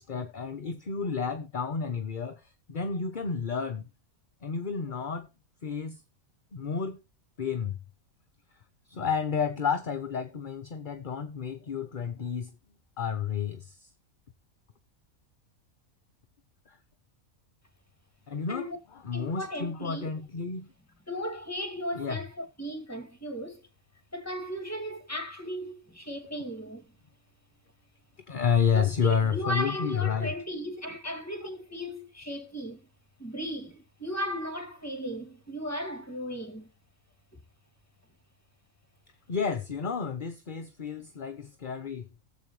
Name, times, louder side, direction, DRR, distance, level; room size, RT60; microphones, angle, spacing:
voice 1, 0.0-2.4 2.7-3.9 4.4-5.3 5.6-6.0 6.5-7.0 7.4-7.8 8.9-12.5 13.0-13.9 16.7-16.8 18.3-20.7 21.9-22.2 28.3-30.3 39.3-42.1, left 6 dB, 40° left, 0.9 m, -30 dB
voice 2, 19.1-20.1 21.1-23.6 24.1-26.9 28.7-32.8 33.2-36.7, equal, 10° left, 2.2 m, -36 dB
18.0 x 7.5 x 3.1 m
omnidirectional pair, 1.5 m